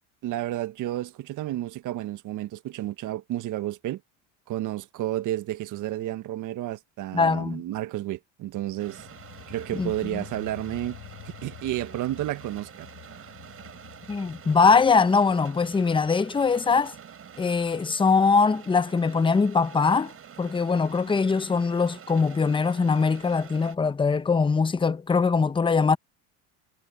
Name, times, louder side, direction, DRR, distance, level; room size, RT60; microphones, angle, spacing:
voice 1, 0.2-4.0 4.5-9.0 9.5-11.0 11.4-12.9 13.1-13.3, right 14 dB, 55° right, 1.6 m, -31 dB
voice 2, 7.1-7.6 9.7-10.2 14.1-16.9 17.4-20.1 20.4-26.0, left 5 dB, 15° left, 0.8 m, -22 dB
sound 1, 8.8-19.1 19.5-19.8, left 19 dB, 65° left, 7.1 m, -49 dB
sound 2, 8.8-23.8, right 8 dB, 35° right, 5.3 m, -47 dB
supercardioid pair, 105°, 37 cm